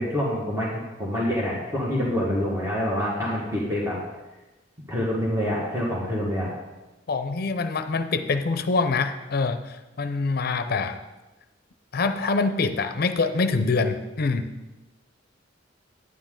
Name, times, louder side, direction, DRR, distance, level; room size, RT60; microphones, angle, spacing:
voice 1, 0.0-4.0 4.9-6.5, equal, 15° right, -5 dB, 1.5 m, -26 dB
voice 2, 7.1-11.0 11.9-14.5, left 4 dB, 55° left, 10 dB, 0.5 m, -25 dB
9.5 x 9.5 x 3.7 m, 1.1 s
head